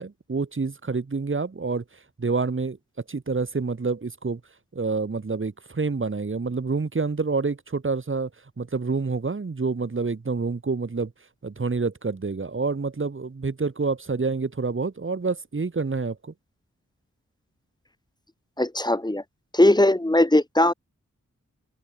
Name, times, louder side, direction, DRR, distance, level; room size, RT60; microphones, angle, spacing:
voice 1, 0.0-1.8 2.2-2.8 3.1-4.4 4.7-8.3 8.6-11.1 11.4-16.3, right 4 dB, 45° right, 3.2 m, -27 dB
voice 2, 18.6-19.2 19.5-20.7, left 1 dB, 15° left, 4.4 m, -19 dB
open air
wide cardioid pair, 100°, 29 cm